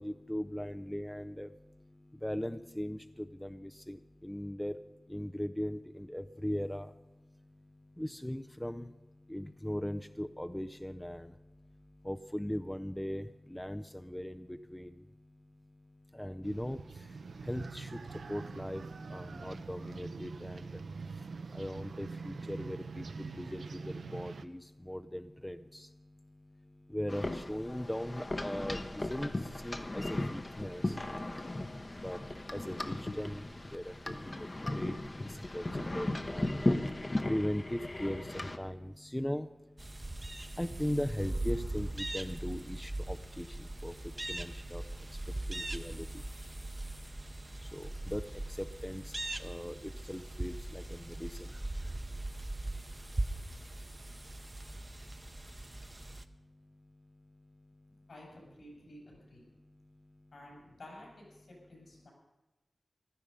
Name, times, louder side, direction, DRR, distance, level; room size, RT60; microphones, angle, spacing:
voice 1, 0.0-1.5 2.2-4.0 4.2-4.7 5.1-6.9 8.0-8.9 9.3-11.3 12.1-13.3 13.5-14.9 16.2-16.8 17.5-17.9 18.3-18.8 19.1-20.6 21.5-24.6 24.9-25.8 26.9-28.8 29.1-29.3 29.6-30.9 32.0-32.2 32.5-33.4 33.7-34.5 34.7-35.0 35.5-35.7 35.9-36.6 37.3-39.5 40.6-43.5 43.8-43.9 44.3-44.8 45.5-46.0 47.7-48.2 48.6-49.0 49.4-49.7 50.1-51.3, equal, 10° left, 9 dB, 0.4 m, -38 dB
sound 1, 16.4-24.5, right 4 dB, 90° right, 0.6 m, -44 dB
sound 2, 27.1-38.6, left 1 dB, 30° left, 0.8 m, -36 dB
sound 3, 39.8-56.2, right 1 dB, 25° right, 0.7 m, -40 dB
voice 2, 58.1-59.4 60.3-62.1, left 1 dB, 75° left, -2 dB, 6.4 m, -52 dB
15.5 x 12.5 x 5.5 m, 1.1 s
wide cardioid pair, 105°, 0 cm